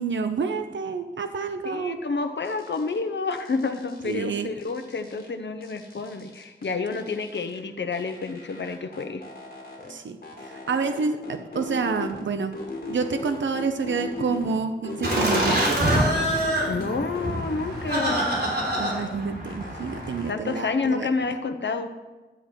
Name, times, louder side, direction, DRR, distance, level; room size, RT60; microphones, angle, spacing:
voice 1, 0.0-2.0 4.0-4.5 9.9-12.5 12.9-15.8 18.8-21.1, right 5 dB, 80° right, 7 dB, 0.6 m, -28 dB
voice 2, 1.6-9.2 16.7-18.3 20.3-21.9, left 4 dB, 70° left, 8 dB, 0.9 m, -29 dB
sound 1, 2.4-3.0 3.3-5.3 5.6-7.6 7.9-9.9 10.2-12.2 12.5-14.5 14.8-16.8 17.1-19.2 19.4-20.6, left 3 dB, 50° left, 2.2 m, -38 dB
Laughter, 15.0-20.2, right 1 dB, 55° right, 3.3 m, -25 dB
12.5 x 7.9 x 4.4 m, 1.2 s
wide cardioid pair, 85°, 19 cm